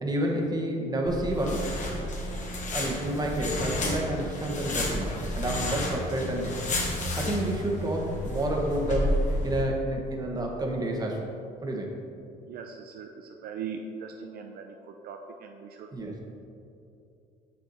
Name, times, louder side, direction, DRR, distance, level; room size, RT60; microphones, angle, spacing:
voice 1, 0.0-1.7 2.3-2.4 2.7-6.7 7.2-11.3 11.6-12.0 15.9-16.2, right 1 dB, 25° right, 0 dB, 1.4 m, -30 dB
sound 1, 1.1-9.6, left 1 dB, 45° left, 1.5 m, -31 dB
voice 2, 12.5-16.2, right 6 dB, 65° right, 3 dB, 0.5 m, -40 dB
7.0 x 6.7 x 4.2 m, 2.7 s
cardioid pair, 110°, 17 cm